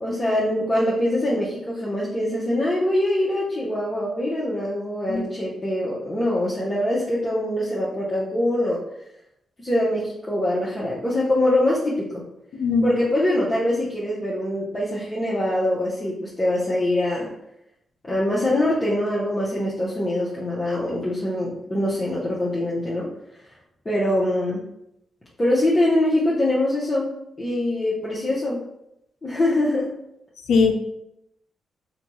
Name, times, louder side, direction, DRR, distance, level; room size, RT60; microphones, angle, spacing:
voice 1, 0.0-8.8 9.6-12.1 12.8-17.3 18.1-23.1 23.8-24.6 25.4-27.1 27.4-28.6 29.2-29.9, left 1 dB, 30° left, -7 dB, 0.8 m, -23 dB
voice 2, 12.5-12.8 30.5-30.7, left 5 dB, 75° left, 5 dB, 0.4 m, -19 dB
2.6 x 2.2 x 2.9 m, 0.80 s
supercardioid pair, 45°, 0 cm